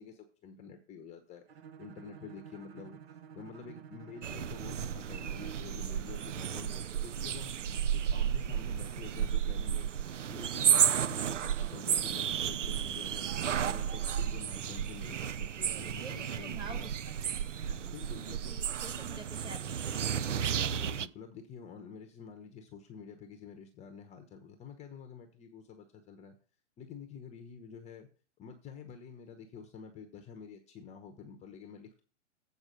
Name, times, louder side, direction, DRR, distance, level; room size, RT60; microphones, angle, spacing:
voice 1, 0.0-1.4 1.8-3.0 3.3-7.6 7.9-9.9 10.3-13.3 13.7-16.9 17.7-18.6 20.6-26.4 26.8-28.1 28.4-32.0, left 6 dB, 20° left, 6 dB, 0.9 m, -49 dB
Bowed string instrument, 1.5-5.7, right 8 dB, 55° right, 1.0 m, -50 dB
sound 1, 4.2-21.1, right 9 dB, 90° right, 0.6 m, -32 dB
voice 2, 15.6-20.1, right 3 dB, 15° right, 4 dB, 1.5 m, -49 dB
8.1 x 4.9 x 6.2 m, 0.38 s
hypercardioid pair, 120°, 36 cm